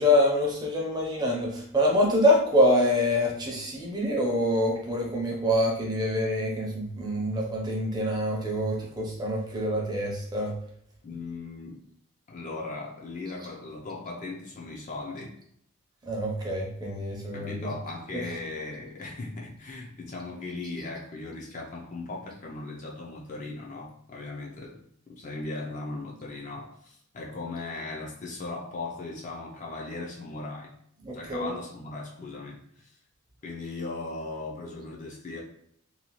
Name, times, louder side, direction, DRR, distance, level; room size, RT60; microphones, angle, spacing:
voice 1, 0.0-10.5 16.1-17.5 31.0-31.5, left 1 dB, 20° right, -1 dB, 0.6 m, -25 dB
voice 2, 11.0-11.8 12.3-15.4 17.3-30.7 31.1-33.0 33.4-35.4, left 3 dB, 35° left, -2 dB, 0.4 m, -38 dB
2.7 x 2.2 x 2.9 m, 0.70 s
head